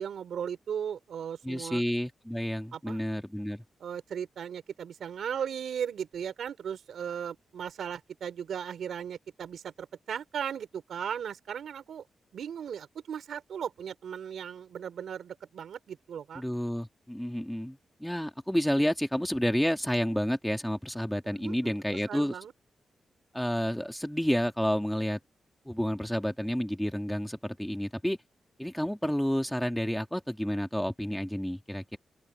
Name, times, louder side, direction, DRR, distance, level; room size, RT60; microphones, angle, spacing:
voice 1, 0.0-1.8 2.7-3.0 3.8-12.0 12.3-16.4 21.3-21.8 22.1-22.5, right 8 dB, 85° right, 3.6 m, -37 dB
voice 2, 1.4-3.6 16.4-22.4 23.3-25.2 25.7-28.2 28.6-32.0, equal, 5° left, 2.1 m, -30 dB
open air
wide cardioid pair, 140°, 0 cm